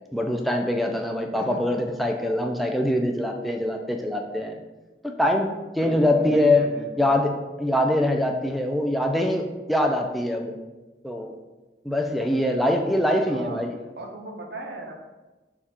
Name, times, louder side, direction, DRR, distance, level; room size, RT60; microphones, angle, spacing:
voice 1, 0.1-4.6 5.0-6.7 7.0-10.5 11.0-11.3 11.8-13.8, left 1 dB, ahead, 2 dB, 0.3 m, -23 dB
voice 2, 5.8-7.1 13.3-13.6 14.0-15.0, right 2 dB, 70° right, 1 dB, 0.6 m, -37 dB
3.5 x 2.4 x 4.2 m, 1.1 s
head